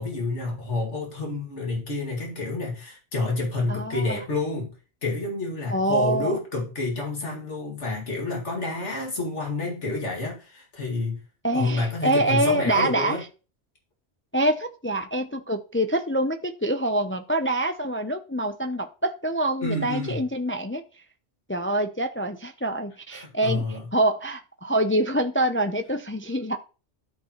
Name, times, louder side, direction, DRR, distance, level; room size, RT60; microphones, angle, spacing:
voice 1, 0.0-4.7 5.0-11.2 11.5-13.2 19.6-20.2 23.1-23.8, left 2 dB, 90° left, -1 dB, 2.5 m, -29 dB
voice 2, 3.7-4.2 5.7-6.3 11.4-13.2 14.3-20.8 21.5-23.6 23.9-26.6, right 1 dB, 20° left, 7 dB, 0.3 m, -25 dB
13.0 x 4.5 x 3.0 m, 0.34 s
omnidirectional pair, 1.2 m